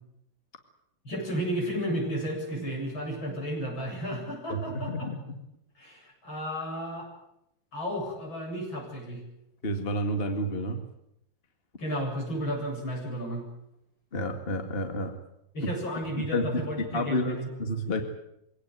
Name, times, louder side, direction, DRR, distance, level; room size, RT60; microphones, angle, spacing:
voice 1, 1.0-5.1 5.8-7.1 7.7-9.2 11.8-13.4 15.5-17.5, equal, 75° left, 0 dB, 8.9 m, -33 dB
voice 2, 4.5-5.4 9.6-10.8 14.1-15.1 16.2-16.7 16.9-18.0, equal, 30° left, 5 dB, 2.2 m, -30 dB
24.5 x 17.5 x 9.5 m, 0.81 s
omnidirectional pair, 2.2 m